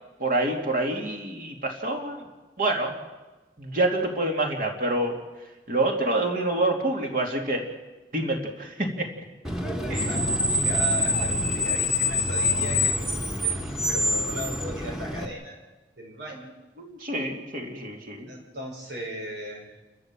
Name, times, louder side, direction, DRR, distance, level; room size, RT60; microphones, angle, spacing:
voice 1, 0.2-2.3 2.6-2.9 3.6-5.2 5.7-7.7 8.1-9.1 9.9-10.1 16.8-18.3, right 2 dB, 50° right, 2 dB, 2.8 m, -27 dB
Screech, 9.4-15.3, left 2 dB, 5° right, 1.5 m, -26 dB
voice 2, 9.6-15.6 16.0-16.5 18.3-19.8, equal, 85° right, -1 dB, 5.7 m, -37 dB
29.5 x 13.0 x 7.6 m, 1.2 s
head